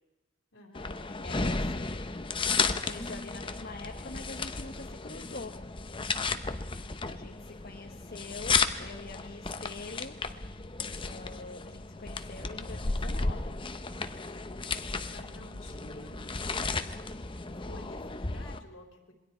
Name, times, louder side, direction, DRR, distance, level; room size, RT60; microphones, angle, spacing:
voice 1, 0.5-1.0 15.1-16.4 17.4-19.1, left 1 dB, 75° left, 2 dB, 4.0 m, -52 dB
sound 1, 0.7-18.6, left 4 dB, 25° left, 0.8 m, -34 dB
voice 2, 1.2-1.7 2.5-5.5 7.1-10.1 11.0-13.5, left 3 dB, 50° left, 2 dB, 1.2 m, -44 dB
27.0 x 22.0 x 4.5 m, 1.0 s
head